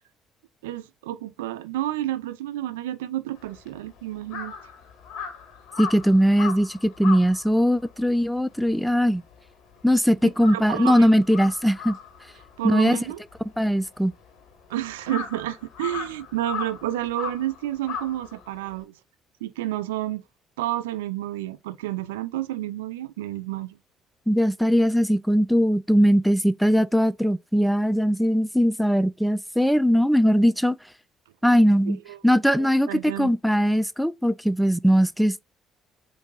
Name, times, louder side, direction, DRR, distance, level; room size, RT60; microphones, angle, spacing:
voice 1, 0.6-4.5 10.5-11.1 12.6-13.2 14.7-18.9 19.4-20.2 20.6-23.8 31.9-32.2 32.5-33.3, right 14 dB, 75° right, 0.4 m, -30 dB
Crow, 3.4-9.9 10.2-18.8, left 7 dB, 60° left, 1.5 m, -38 dB
voice 2, 5.8-9.2 9.8-12.0 12.6-13.0 13.6-14.1 24.3-30.8 31.4-32.0 32.2-35.4, equal, ahead, 0.4 m, -20 dB
7.9 x 2.7 x 2.4 m
figure-of-eight pair, 50°, 0 cm